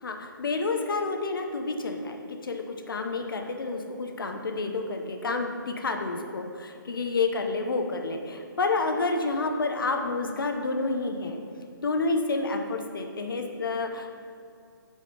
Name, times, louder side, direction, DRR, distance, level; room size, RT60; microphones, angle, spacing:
voice 1, 0.0-2.2 2.4-11.4 11.8-14.1, left 3 dB, 70° left, 4 dB, 0.7 m, -29 dB
6.3 x 4.9 x 4.2 m, 2.5 s
hypercardioid pair, 165°, 12 cm